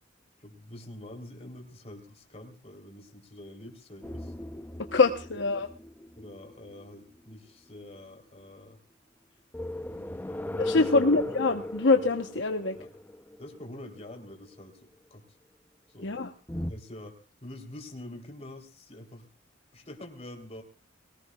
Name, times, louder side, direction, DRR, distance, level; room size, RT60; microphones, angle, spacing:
voice 1, 0.4-4.3 6.2-8.8 9.9-11.3 12.7-12.9 13.4-15.4 15.9-16.3 16.7-19.3 19.7-20.6, left 1 dB, 35° left, 3 dB, 3.6 m, -46 dB
sound 1, 4.0-7.5 9.5-14.2 16.5-16.7, left 1 dB, 10° left, 0.7 m, -37 dB
voice 2, 4.9-5.7 10.6-12.8 16.0-16.3, left 3 dB, 70° left, 5 dB, 1.1 m, -24 dB
22.5 x 18.5 x 2.4 m, 0.38 s
head